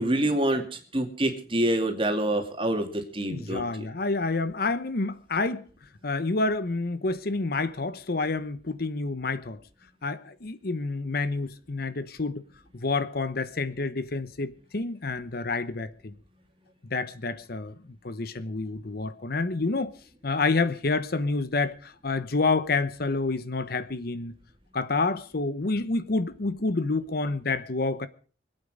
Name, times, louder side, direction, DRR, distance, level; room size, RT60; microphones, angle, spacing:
voice 1, 0.0-3.9, right 1 dB, 30° right, 2.5 m, -26 dB
voice 2, 3.3-5.6 6.0-9.6 10.0-12.4 12.7-16.1 16.8-17.8 18.0-19.9 20.2-24.3 24.7-28.1, left 3 dB, 50° left, 0.9 m, -28 dB
25.5 x 8.9 x 5.0 m
head